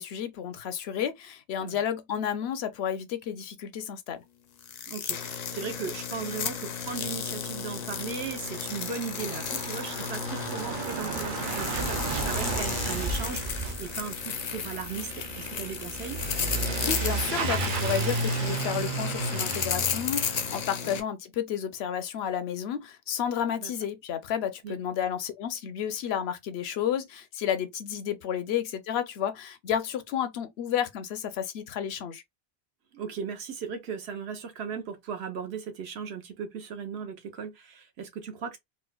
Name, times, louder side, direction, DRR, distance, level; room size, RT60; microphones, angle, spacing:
voice 1, 0.0-4.2 16.8-32.2, left 9 dB, 80° left, 0.9 m, -31 dB
sound 1, 4.6-21.0, left 7 dB, 55° left, 0.5 m, -34 dB
voice 2, 4.9-16.2 20.8-21.0 23.6-23.7 24.6-24.8 32.9-38.6, right 6 dB, 85° right, 1.1 m, -37 dB
Truck / Accelerating revving vroom, 6.9-7.0 7.2-20.6, right 4 dB, 60° right, 0.7 m, -33 dB
4.3 x 2.1 x 2.3 m
omnidirectional pair, 1.1 m